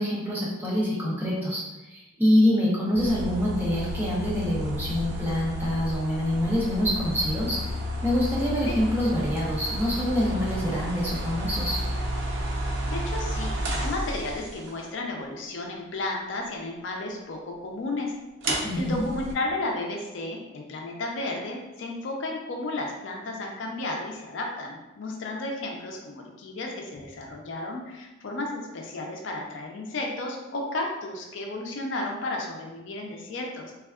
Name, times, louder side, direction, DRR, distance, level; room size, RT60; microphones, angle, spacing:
voice 1, 0.0-1.6 1.9-7.6 8.0-11.8 18.6-19.0, equal, 10° right, -7 dB, 0.6 m, -25 dB
sound 1, 2.9-14.7 18.4-19.3, equal, 65° right, 0.5 m, -31 dB
voice 2, 12.9-18.1 18.8-33.7, left 2 dB, 65° left, 0 dB, 0.4 m, -33 dB
3.4 x 2.2 x 2.3 m, 1.0 s
head